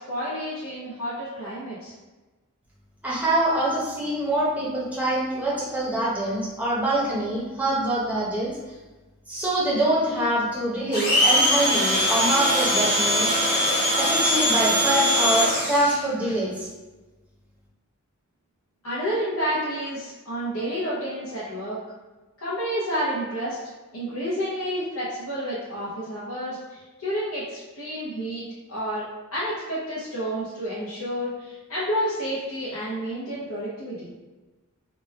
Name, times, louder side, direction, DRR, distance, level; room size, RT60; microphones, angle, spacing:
voice 1, 0.0-1.9 18.8-21.8 22.4-23.6 23.9-29.1 29.3-34.1, equal, 90° left, -9 dB, 0.7 m, -30 dB
voice 2, 3.0-8.5 9.3-13.6 13.9-16.7, right 1 dB, 5° right, -6 dB, 0.7 m, -25 dB
Domestic sounds home sounds, 10.9-16.0, equal, 40° left, 1.4 m, -21 dB
3.0 x 2.2 x 3.3 m, 1.2 s
head